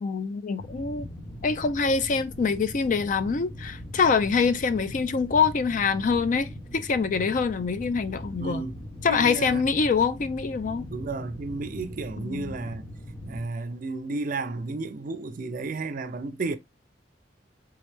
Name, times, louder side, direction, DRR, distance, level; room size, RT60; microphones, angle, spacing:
voice 1, 0.0-1.1 1.4-8.6 9.0-10.9 12.2-12.5, left 5 dB, 45° left, 0.4 m, -25 dB
sound 1, 0.6-13.5, left 1 dB, 20° left, 0.7 m, -40 dB
voice 2, 8.4-8.8 9.1-9.8 10.9-12.9 13.3-16.6, right 3 dB, 50° right, 0.4 m, -33 dB
3.5 x 3.1 x 3.2 m
head